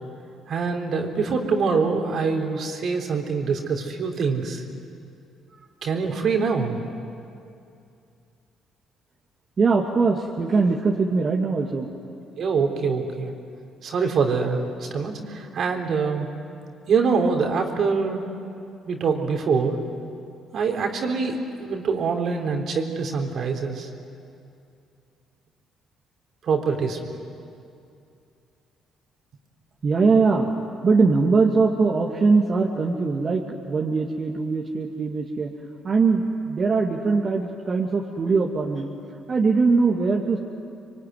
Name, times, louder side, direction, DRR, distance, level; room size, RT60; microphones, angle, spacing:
voice 1, 0.5-4.6 5.8-6.9 12.4-13.3 13.8-16.3 16.9-18.3 18.9-19.8 20.5-23.9 26.4-27.0 27.2-27.5, right 5 dB, 60° right, 3 dB, 3.8 m, -24 dB
voice 2, 9.6-11.9 29.8-35.5 35.8-38.9 39.3-40.4, right 4 dB, 45° right, -1 dB, 2.5 m, -21 dB
26.5 x 23.5 x 9.6 m, 2.5 s
hypercardioid pair, 55°, 0 cm